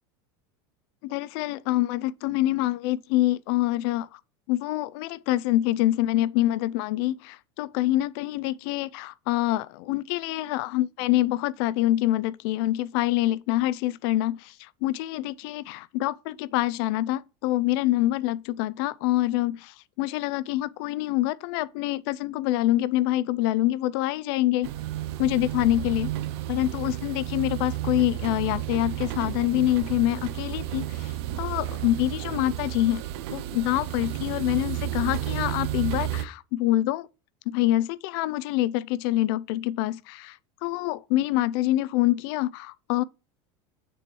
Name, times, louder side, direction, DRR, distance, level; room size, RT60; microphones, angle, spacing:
voice 1, 1.0-4.2 4.5-24.7 25.2-26.1 26.5-33.0 33.3-37.1 37.5-43.0, left 15 dB, 65° left, 0.4 m, -26 dB
sound 1, 24.6-36.2, right 14 dB, 75° right, 0.6 m, -32 dB
6.8 x 3.0 x 5.2 m
supercardioid pair, 115°, 14 cm